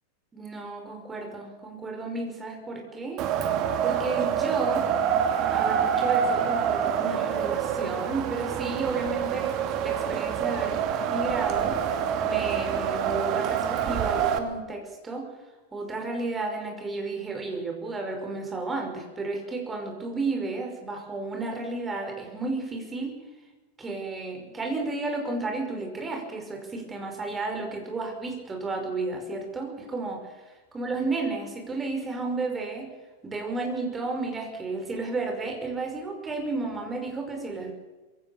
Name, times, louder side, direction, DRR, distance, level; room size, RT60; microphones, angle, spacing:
voice 1, 0.3-3.2 3.8-4.9 5.5-10.8 11.1-11.8 12.2-15.3 15.7-23.2 23.8-32.9 33.2-37.7, right 3 dB, 15° right, 3 dB, 5.4 m, -32 dB
Wind, 3.2-14.4, right 8 dB, 40° right, 2.3 m, -26 dB
22.5 x 17.0 x 7.1 m, 1.2 s
figure-of-eight pair, 90°, 0 cm